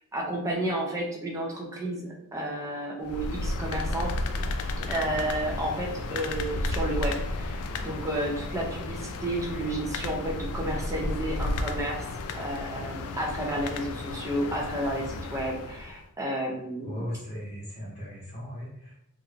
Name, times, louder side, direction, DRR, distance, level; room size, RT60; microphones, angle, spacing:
voice 1, 0.1-4.1 4.8-12.0 12.3-17.1, right 1 dB, 15° right, -1 dB, 0.4 m, -31 dB
sound 1, 3.0-16.0, left 2 dB, 75° left, 0.3 m, -33 dB
voice 2, 16.8-18.9, equal, 25° left, -8 dB, 0.8 m, -37 dB
2.4 x 2.2 x 3.1 m, 0.74 s
head